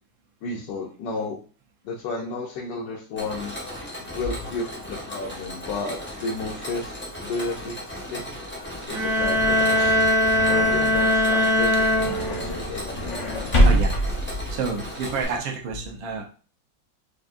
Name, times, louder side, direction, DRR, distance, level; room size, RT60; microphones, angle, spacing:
voice 1, 0.4-1.4 1.8-3.5 4.1-6.9 7.2-7.7 8.1-8.2 8.5-10.0 10.5-13.3, left 3 dB, 70° left, -2 dB, 1.3 m, -32 dB
Mechanisms, 3.2-15.4, left 1 dB, 10° left, 0.5 m, -37 dB
sound 1, 8.9-15.2, equal, 40° left, 0.8 m, -26 dB
sound 2, 8.9-12.7, left 1 dB, 55° right, 1.1 m, -21 dB
voice 2, 14.2-16.3, right 4 dB, 75° right, 2 dB, 1.5 m, -30 dB
4.7 x 2.6 x 2.5 m, 0.37 s
omnidirectional pair, 2.1 m